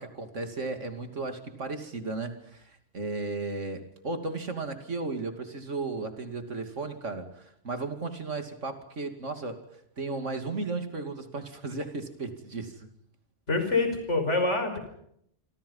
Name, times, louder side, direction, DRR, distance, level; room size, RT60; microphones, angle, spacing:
voice 1, 0.0-9.6 10.0-12.9, right 3 dB, 80° right, 7 dB, 3.0 m, -35 dB
voice 2, 13.5-14.8, left 3 dB, 70° left, 6 dB, 5.8 m, -26 dB
27.5 x 26.0 x 5.6 m, 0.73 s
omnidirectional pair, 1.2 m